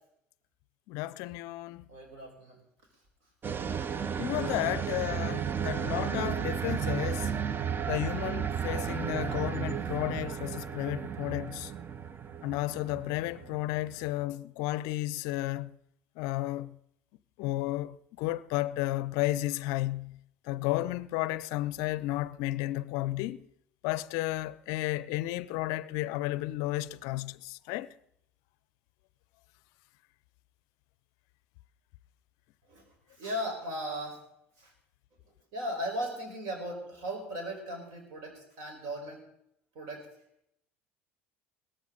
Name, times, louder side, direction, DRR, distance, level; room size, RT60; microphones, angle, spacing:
voice 1, 0.9-1.9 4.2-7.3 7.9-11.7 12.4-15.7 16.2-16.8 17.4-20.2 20.5-23.4 23.8-27.9, left 17 dB, 60° left, 0.5 m, -33 dB
voice 2, 1.9-2.6 32.7-34.2 34.6-34.7 35.5-39.2 39.7-40.1, equal, 60° right, 4.8 m, -37 dB
sound 1, 3.4-14.2, right 7 dB, 30° right, 0.7 m, -33 dB
17.5 x 14.0 x 3.9 m
figure-of-eight pair, 70°, 7 cm